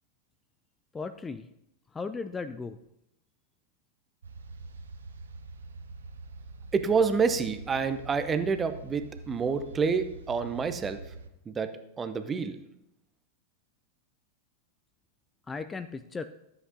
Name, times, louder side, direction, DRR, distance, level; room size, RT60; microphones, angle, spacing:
voice 1, 0.9-1.5 1.9-2.8 15.5-16.3, left 4 dB, 15° left, 10 dB, 0.4 m, -36 dB
sound 1, 4.2-11.3, right 3 dB, 70° right, 0.7 m, -45 dB
voice 2, 6.7-11.0 11.5-11.7 12.0-12.6, right 5 dB, 20° right, 10 dB, 0.7 m, -28 dB
13.5 x 8.0 x 2.7 m, 0.82 s
figure-of-eight pair, 90°, 0 cm